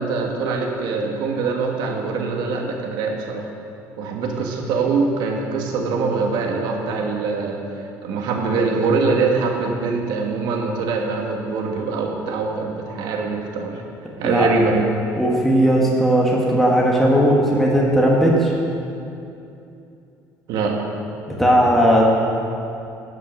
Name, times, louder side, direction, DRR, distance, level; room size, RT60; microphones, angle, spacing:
voice 1, 0.0-3.5 4.0-7.6 8.0-13.8 14.2-14.9 20.5-20.9, right 4 dB, 80° right, 1 dB, 1.4 m, -23 dB
voice 2, 15.2-18.5 21.4-22.0, equal, 5° left, -3 dB, 1.3 m, -17 dB
11.0 x 5.5 x 6.3 m, 2.7 s
cardioid pair, 130°, 7 cm